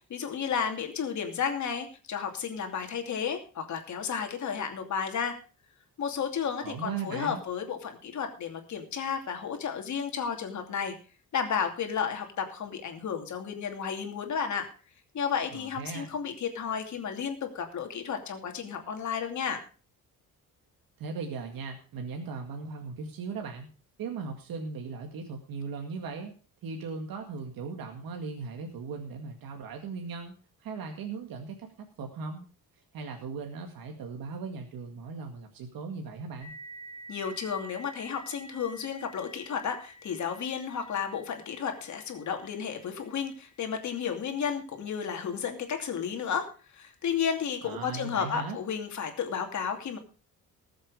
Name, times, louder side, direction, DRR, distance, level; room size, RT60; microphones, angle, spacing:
voice 1, 0.1-5.3 6.0-10.9 11.3-14.7 15.1-19.6 37.1-50.0, left 7 dB, 55° left, 4 dB, 2.7 m, -32 dB
voice 2, 6.6-7.4 15.5-16.1 21.0-23.7 24.0-26.3 26.6-30.3 30.6-32.5 32.9-36.5 47.6-48.6, right 4 dB, 75° right, 3 dB, 2.1 m, -38 dB
sound 1, 36.4-45.6, right 1 dB, 15° left, 3.8 m, -51 dB
19.0 x 7.6 x 4.9 m, 0.37 s
cardioid pair, 175°, 35 cm